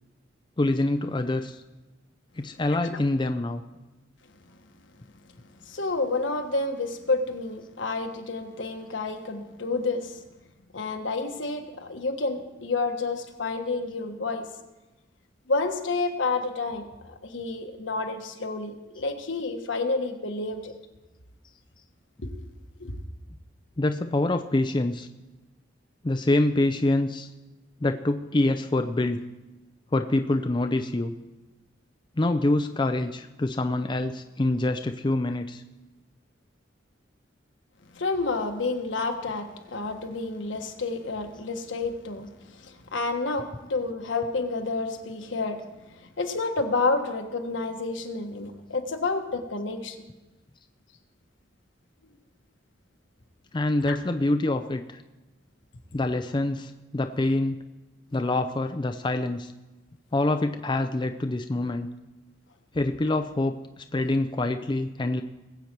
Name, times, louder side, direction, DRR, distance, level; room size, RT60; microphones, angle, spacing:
voice 1, 0.6-1.6 2.4-3.6 23.8-25.1 26.0-27.3 27.8-29.2 29.9-31.1 32.2-35.6 53.5-55.0 55.9-57.6 58.1-59.5 60.1-61.9 62.7-65.2, left 2 dB, 25° left, 7 dB, 0.5 m, -26 dB
voice 2, 5.6-10.2 10.7-14.5 15.5-20.7 22.2-22.3 22.8-22.9 37.9-45.6 46.0-50.0 53.9-54.0, left 3 dB, 75° left, 5 dB, 1.4 m, -29 dB
20.5 x 8.1 x 4.5 m, 1.1 s
head